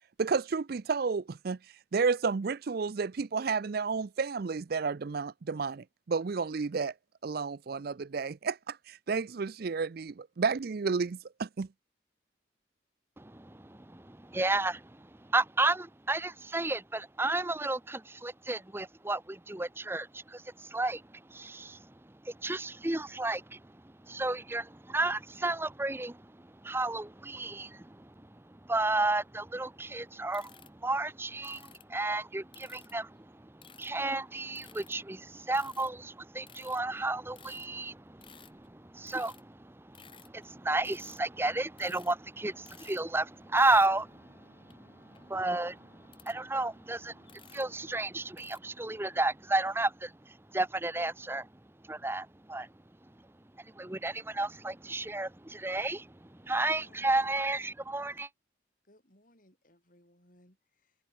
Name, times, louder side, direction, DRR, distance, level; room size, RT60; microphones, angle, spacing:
voice 1, 0.2-1.6 1.9-6.9 7.2-11.7, right 5 dB, 50° right, 0.4 m, -31 dB
voice 2, 13.2-51.5 51.8-52.7 53.6-58.3, right 2 dB, 10° right, 0.8 m, -33 dB
sound 1, 30.3-31.9 32.5-32.9 33.6-34.1 34.6-35.2 35.5-36.1 36.5-39.5 39.8-40.5 40.8-41.2 41.6-42.3 42.5-43.2 43.4-44.1 44.7-44.8 45.1-46.4 46.7-46.8 47.2-47.8 48.4-48.6, left 8 dB, 25° left, 5.9 m, -56 dB
Wind instrument woodwind instrument, 43.3-48.1, left 1 dB, 65° left, 6.6 m, -64 dB
voice 3, 56.4-57.3 58.8-61.0, left 1 dB, 45° left, 7.3 m, -63 dB
head